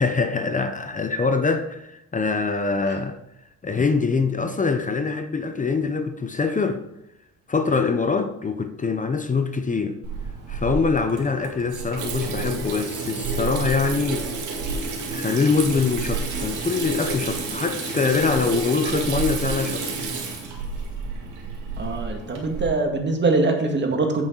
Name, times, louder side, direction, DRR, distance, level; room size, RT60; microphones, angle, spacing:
voice 1, 0.0-3.2 3.6-6.8 7.5-10.0 10.5-14.3 15.1-19.8, left 4 dB, 25° left, 8 dB, 0.8 m, -24 dB
Water tap faucet / Sink (filling or washing), 10.0-22.7, right 4 dB, 75° right, 2.2 m, -30 dB
voice 2, 21.8-24.2, right 3 dB, 35° right, 3 dB, 2.0 m, -23 dB
8.8 x 7.3 x 3.9 m, 0.89 s
cardioid pair, 90°, 30 cm